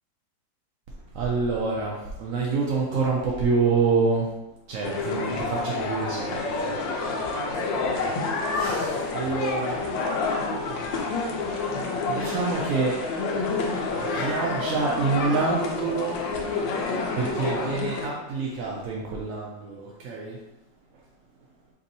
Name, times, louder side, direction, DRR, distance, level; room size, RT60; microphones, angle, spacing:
voice 1, 1.1-4.3 4.7-9.9 10.5-10.6 11.7-13.0 13.9-16.2 17.1-20.4, right 4 dB, 75° right, -3 dB, 0.7 m, -27 dB
sound 1, 4.8-18.1, left 3 dB, 80° left, 1.3 m, -28 dB
3.4 x 2.7 x 4.0 m, 0.97 s
omnidirectional pair, 2.0 m